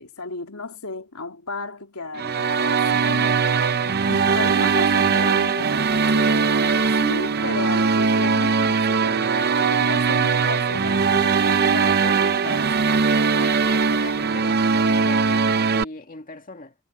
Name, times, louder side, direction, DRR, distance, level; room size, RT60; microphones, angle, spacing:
voice 1, 0.0-3.5 4.1-12.7, left 3 dB, 90° left, 3.4 m, -34 dB
sound 1, 2.2-15.8, right 5 dB, 45° right, 0.7 m, -20 dB
voice 2, 13.4-16.7, left 2 dB, 40° left, 2.1 m, -40 dB
head